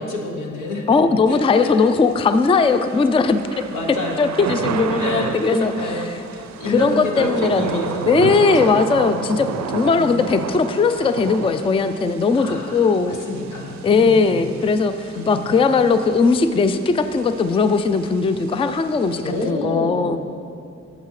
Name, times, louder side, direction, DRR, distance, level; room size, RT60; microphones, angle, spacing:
voice 1, 0.0-1.0 1.3-1.9 3.5-4.5 5.0-8.8 9.0-9.4 10.0-10.2 12.4-14.5 15.1-15.5 19.2-20.2, left 1 dB, 90° left, 1 dB, 1.1 m, -29 dB
voice 2, 0.9-3.4 4.2-5.7 6.7-13.2 13.8-20.2, left 4 dB, 20° left, 10 dB, 0.3 m, -18 dB
Thunder / Rain, 1.3-19.5, right 6 dB, 65° right, 0.5 m, -32 dB
9.3 x 7.5 x 3.2 m, 2.6 s
cardioid pair, 70°, 30 cm